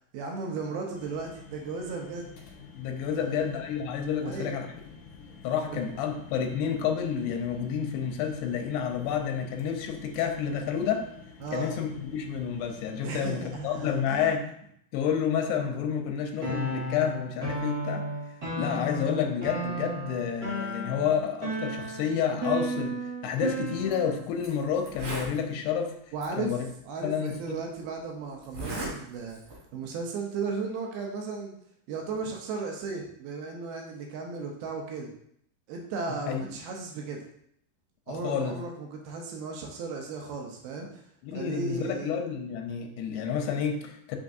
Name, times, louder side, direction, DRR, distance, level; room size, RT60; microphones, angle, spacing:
voice 1, 0.1-2.3 3.1-3.4 4.2-4.5 5.7-5.8 11.4-11.8 13.0-14.3 26.1-26.6 26.9-29.4 29.7-31.5 31.9-35.1 35.7-37.3 38.1-41.0 41.3-42.1, right 4 dB, 80° right, 1 dB, 2.4 m, -35 dB
sound 1, 0.9-14.3, left 5 dB, 70° left, 1.9 m, -49 dB
voice 2, 2.7-4.7 5.4-11.1 11.5-14.5 14.9-18.1 18.6-26.0 26.4-26.7 27.0-27.6 36.3-36.4 38.1-38.6 41.2-44.2, left 7 dB, 90° left, 4 dB, 2.8 m, -29 dB
sound 2, 16.4-24.3, right 1 dB, 40° right, 1.5 m, -34 dB
Zipper (clothing), 23.8-23.9 24.4-24.5 24.8-25.4 26.2-26.3 27.3-27.4 28.4-28.9 29.3-29.6, right 1 dB, 60° right, 4.1 m, -36 dB
6.2 x 5.9 x 2.6 m, 0.71 s
omnidirectional pair, 4.8 m